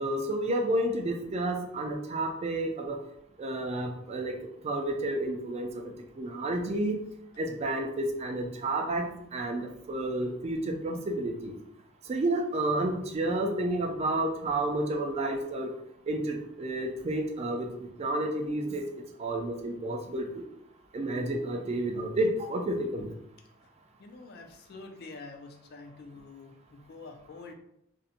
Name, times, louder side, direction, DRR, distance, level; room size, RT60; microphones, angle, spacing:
voice 1, 0.0-3.0 3.4-4.3 4.6-5.7 6.2-6.9 7.4-11.5 12.1-15.7 16.1-17.7 18.0-18.8 19.2-20.3 20.9-23.1, right 1 dB, 35° right, 3 dB, 0.3 m, -30 dB
voice 2, 24.0-27.5, left 3 dB, 55° left, 5 dB, 0.3 m, -47 dB
2.5 x 2.1 x 2.7 m, 0.76 s
head